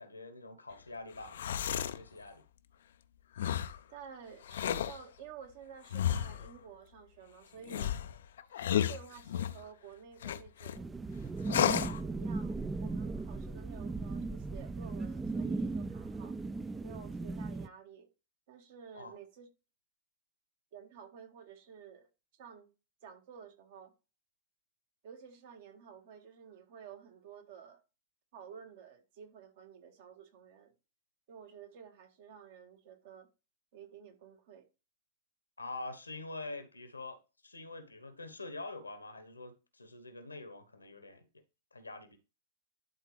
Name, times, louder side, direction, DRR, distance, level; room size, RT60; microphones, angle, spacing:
voice 1, 0.0-2.4 18.9-19.2 35.6-41.3 41.7-42.2, left 2 dB, 85° left, 1.2 m, -45 dB
sound 1, 1.2-2.0 3.4-3.8 4.4-5.0 5.9-6.5 7.7-9.6 10.2-10.8 11.5-12.0, left 10 dB, 60° left, 0.5 m, -32 dB
voice 2, 3.9-7.9 8.7-11.0 11.4-16.4 16.8-18.1 18.5-19.5 20.7-22.7 23.0-23.9 25.0-27.8 28.3-30.7 31.3-33.3 33.7-34.7, right 7 dB, 50° right, 1.7 m, -52 dB
sound 2, 10.8-17.7, right 3 dB, 10° right, 0.4 m, -37 dB
11.0 x 3.8 x 3.3 m
figure-of-eight pair, 100°, 0 cm